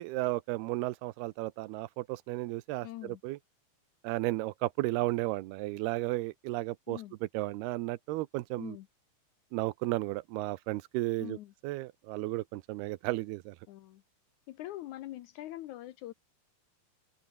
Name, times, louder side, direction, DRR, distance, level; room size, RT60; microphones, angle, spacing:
voice 1, 0.0-3.4 4.0-7.0 7.3-8.8 9.5-11.4 11.6-13.6, right 19 dB, 80° right, 2.7 m, -34 dB
voice 2, 2.8-3.2 6.9-7.1 8.6-8.9 11.2-11.5 13.7-14.0 14.5-16.1, left 15 dB, 85° left, 1.7 m, -43 dB
omnidirectional pair, 4.6 m